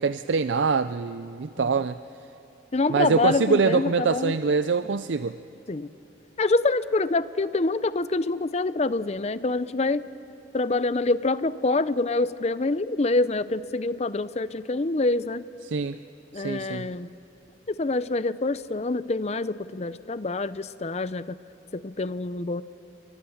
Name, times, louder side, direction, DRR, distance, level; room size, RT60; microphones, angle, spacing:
voice 1, 0.0-2.0 2.9-5.4 15.7-16.0 16.3-16.8, right 5 dB, 90° right, 12 dB, 0.5 m, -24 dB
voice 2, 2.7-4.4 5.7-5.9 6.4-10.0 10.5-15.5 16.3-17.1 17.7-21.4 21.7-22.6, left 3 dB, 35° left, 15 dB, 0.6 m, -26 dB
29.5 x 24.5 x 7.2 m, 2.8 s
head